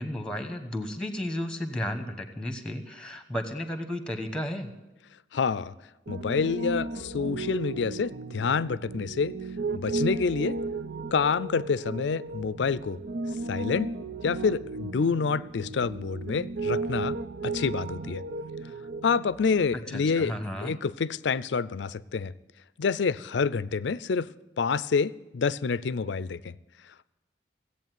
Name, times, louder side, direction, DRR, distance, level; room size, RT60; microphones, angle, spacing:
voice 1, 0.0-4.7 19.7-20.8, left 1 dB, 5° left, 7 dB, 1.1 m, -33 dB
voice 2, 5.3-5.7 6.1-9.3 9.7-10.6 11.1-13.0 13.5-13.9 14.2-17.2 17.4-18.2 19.0-20.3 20.6-22.3 22.8-24.3 24.6-26.6, left 5 dB, 75° left, 18 dB, 0.4 m, -27 dB
Piano, 6.1-19.8, right 3 dB, 75° right, 0.7 m, -35 dB
16.5 x 8.5 x 9.3 m, 1.0 s
head